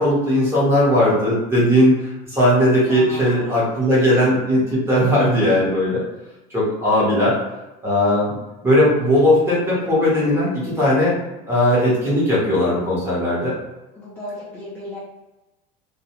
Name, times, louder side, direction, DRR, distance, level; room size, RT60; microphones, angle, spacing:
voice 1, 0.0-6.0 6.5-7.4 7.8-8.3 8.6-11.2 11.5-13.5, left 1 dB, 10° right, -7 dB, 0.9 m, -18 dB
voice 2, 2.9-3.7 13.9-15.0, left 1 dB, 10° left, -9 dB, 0.5 m, -35 dB
2.3 x 2.1 x 2.8 m, 1.0 s
cardioid pair, 150°, 20 cm